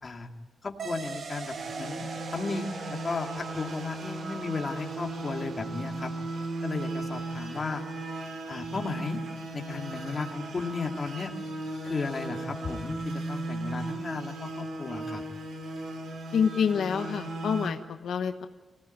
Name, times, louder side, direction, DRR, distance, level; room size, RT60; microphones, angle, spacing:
voice 1, 0.6-2.1 2.3-6.1 6.6-7.8 8.2-9.2 9.5-11.3 11.8-15.2, left 4 dB, 30° left, 3 dB, 2.1 m, -34 dB
sound 1, 0.8-9.8, right 5 dB, 55° right, 1.6 m, -44 dB
sound 2, 1.6-17.7, right 2 dB, 75° right, 3.9 m, -37 dB
voice 2, 16.3-18.5, left 7 dB, 85° left, 7 dB, 1.0 m, -27 dB
25.5 x 17.0 x 9.1 m, 1.2 s
wide cardioid pair, 160°, 0 cm